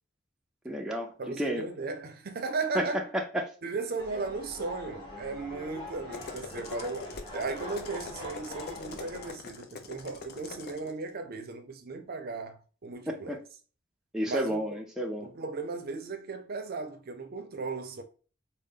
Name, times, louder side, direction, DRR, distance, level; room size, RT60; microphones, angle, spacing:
voice 1, 0.6-1.6 2.7-2.8 3.1-3.5 13.1-13.4 14.1-15.3, equal, 5° right, 0.4 m, -31 dB
voice 2, 1.2-3.1 3.6-13.4 14.3-14.6 15.2-18.0, right 3 dB, 50° right, 0.6 m, -36 dB
sound 1, 4.0-9.3, left 1 dB, 25° left, 1.1 m, -43 dB
sound 2, 6.1-10.9, left 4 dB, 50° left, 0.5 m, -43 dB
3.8 x 2.1 x 3.7 m
head